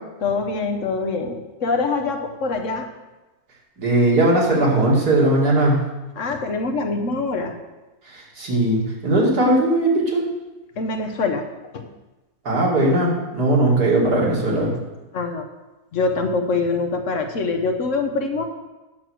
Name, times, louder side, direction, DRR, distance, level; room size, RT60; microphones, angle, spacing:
voice 1, 0.2-2.9 6.2-7.6 10.8-11.4 11.7-11.9 15.1-15.4 15.9-18.4, left 4 dB, 60° left, 4 dB, 1.1 m, -24 dB
voice 2, 3.8-5.8 8.1-10.2 12.4-14.7, right 1 dB, 90° right, -3 dB, 2.8 m, -18 dB
9.3 x 6.4 x 6.2 m, 1.1 s
omnidirectional pair, 1.6 m